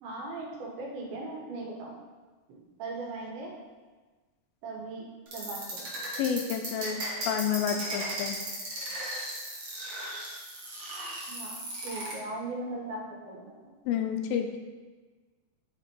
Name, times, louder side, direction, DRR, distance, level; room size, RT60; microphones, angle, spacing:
voice 1, 0.0-1.9 2.5-3.5 4.6-5.0 5.3-6.0 7.6-7.8 11.3-13.7, right 2 dB, 75° right, -2 dB, 3.0 m, -39 dB
sound 1, 5.3-12.1, right 1 dB, 55° right, 1.3 m, -36 dB
voice 2, 6.2-8.4 13.9-14.5, left 8 dB, 80° left, 5 dB, 2.2 m, -30 dB
7.9 x 4.1 x 4.5 m, 1.3 s
omnidirectional pair, 4.5 m